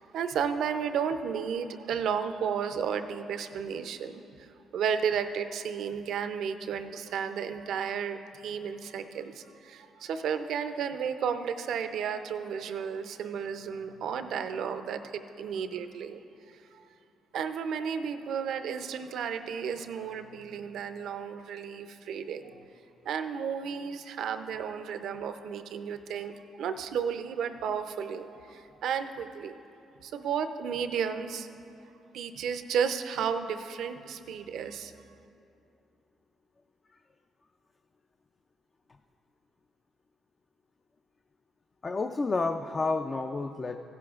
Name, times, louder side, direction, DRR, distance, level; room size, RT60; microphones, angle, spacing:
voice 1, 0.0-4.5 4.7-16.2 16.7-16.8 17.3-22.6 23.1-29.6 30.0-31.5 32.1-34.9, right 7 dB, 75° right, 9 dB, 0.5 m, -33 dB
voice 2, 41.8-43.8, left 3 dB, 30° left, 6 dB, 0.4 m, -30 dB
16.0 x 11.0 x 2.4 m, 2.7 s
cardioid pair, 90°, 0 cm